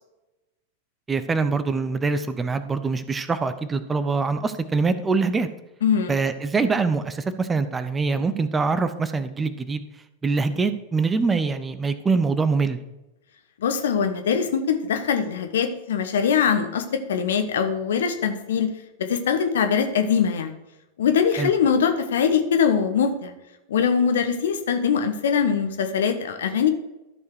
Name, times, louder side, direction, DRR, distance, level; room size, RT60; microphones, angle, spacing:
voice 1, 1.1-5.5 6.1-9.8 10.2-12.8 21.4-21.5, right 4 dB, 15° right, 12 dB, 0.6 m, -24 dB
voice 2, 5.8-6.1 13.6-16.8 17.1-18.7 19.1-20.5 21.0-23.3 23.7-26.7, left 7 dB, 60° left, 7 dB, 1.0 m, -22 dB
13.5 x 4.7 x 4.7 m, 0.99 s
figure-of-eight pair, 90°, 0 cm